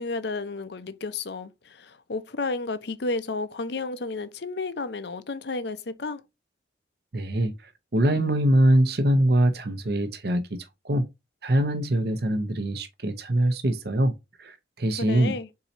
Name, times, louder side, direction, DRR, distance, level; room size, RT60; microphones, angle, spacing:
voice 1, 0.0-6.2 15.0-15.5, left 3 dB, 60° left, 0.6 m, -32 dB
voice 2, 7.1-11.1 11.4-15.4, right 1 dB, 55° right, 0.8 m, -23 dB
4.7 x 4.1 x 2.6 m
head